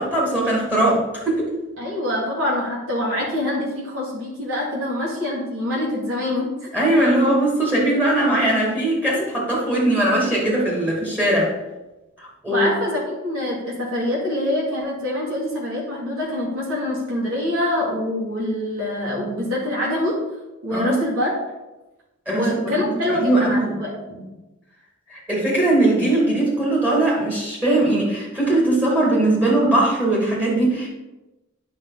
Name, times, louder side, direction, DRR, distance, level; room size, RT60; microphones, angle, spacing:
voice 1, 0.0-1.5 6.7-11.5 12.2-12.7 20.7-21.0 22.3-22.7 23.0-23.6 25.1-30.9, right 1 dB, 10° right, -4 dB, 2.4 m, -20 dB
voice 2, 1.8-6.7 12.5-20.2 20.6-21.3 22.3-24.3, left 1 dB, 90° right, -4 dB, 2.8 m, -25 dB
9.8 x 5.4 x 4.1 m, 1.0 s
head